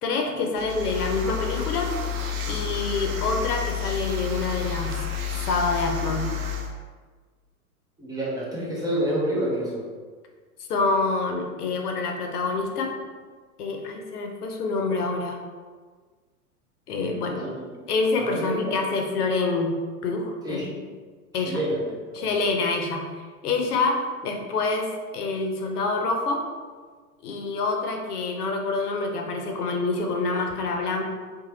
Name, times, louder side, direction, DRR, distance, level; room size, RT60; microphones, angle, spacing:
voice 1, 0.0-1.9 2.5-6.3 10.7-12.9 13.6-15.4 16.9-17.5 17.9-20.8 21.3-21.6 22.1-23.1 23.4-26.4 27.2-31.0, left 3 dB, 80° left, 3 dB, 0.7 m, -27 dB
sound 1, 0.5-6.7, left 7 dB, 70° right, 0.6 m, -30 dB
voice 2, 8.0-9.9 17.0-17.6 18.2-18.7 20.4-20.7 21.3-21.8 22.2-22.4, right 1 dB, 10° right, -6 dB, 0.6 m, -29 dB
2.9 x 2.2 x 2.8 m, 1.5 s
hypercardioid pair, 100°, 45 cm